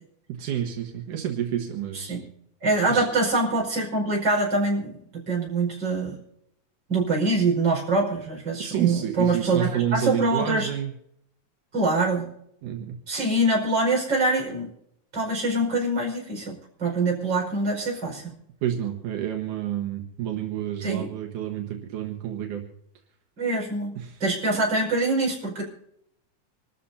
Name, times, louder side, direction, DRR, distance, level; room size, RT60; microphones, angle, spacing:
voice 1, 0.3-2.2 2.6-3.1 8.6-10.9 12.6-13.0 18.6-22.6 24.0-24.2, right 10 dB, 80° right, 2 dB, 2.9 m, -29 dB
voice 2, 2.6-6.2 6.9-10.7 11.7-12.3 13.1-14.7 15.1-18.4 20.8-21.1 23.4-24.0 24.2-25.6, right 2 dB, 35° right, -1 dB, 5.8 m, -24 dB
26.5 x 13.5 x 2.8 m, 0.74 s
omnidirectional pair, 3.5 m